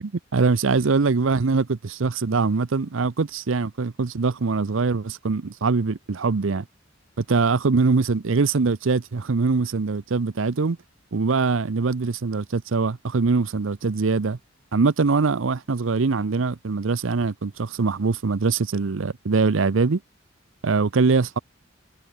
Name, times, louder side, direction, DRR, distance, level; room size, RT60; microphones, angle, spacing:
voice 1, 0.0-6.6 7.2-10.8 11.1-14.4 14.7-20.0 20.6-21.4, right 4 dB, 75° right, 0.7 m, -23 dB
head